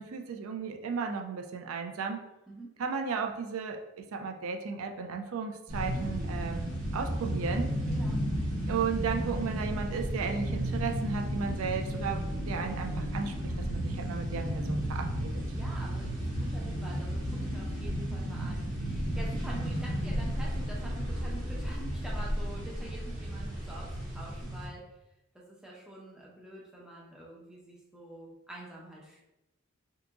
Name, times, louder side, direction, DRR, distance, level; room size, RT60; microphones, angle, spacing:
voice 1, 0.0-2.2 2.8-7.7 8.7-15.3, right 5 dB, 80° right, 4 dB, 0.4 m, -34 dB
voice 2, 2.5-2.8 5.9-6.1 7.9-8.2 15.5-24.9 25.3-29.2, right 1 dB, 5° right, -4 dB, 0.5 m, -47 dB
sound 1, 5.7-24.7, equal, 40° right, 1.0 m, -33 dB
2.8 x 2.4 x 3.4 m, 0.93 s
head